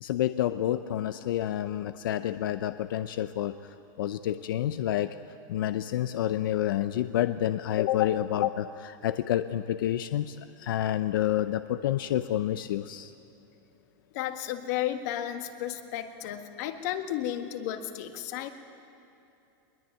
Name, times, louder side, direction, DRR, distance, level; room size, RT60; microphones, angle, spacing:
voice 1, 0.0-3.6 4.0-5.2 5.5-13.1, left 12 dB, 85° left, 11 dB, 0.6 m, -29 dB
voice 2, 14.1-18.5, left 12 dB, 50° left, 7 dB, 1.6 m, -33 dB
22.0 x 21.5 x 9.2 m, 2.9 s
supercardioid pair, 165°, 11 cm